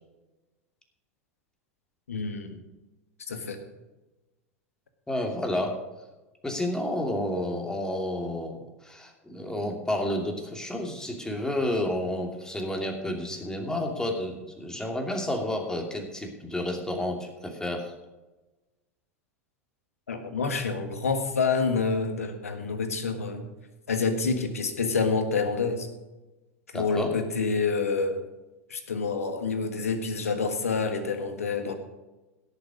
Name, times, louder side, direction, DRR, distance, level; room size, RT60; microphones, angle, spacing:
voice 1, 2.1-2.6 3.3-3.6 20.1-23.5 23.9-25.9 26.7-28.2 28.7-31.8, left 4 dB, 80° left, 7 dB, 1.6 m, -27 dB
voice 2, 5.1-5.8 6.4-17.9 26.7-27.1, left 1 dB, 10° left, 2 dB, 2.7 m, -30 dB
17.0 x 7.0 x 5.2 m, 1.1 s
figure-of-eight pair, 85°, 8 cm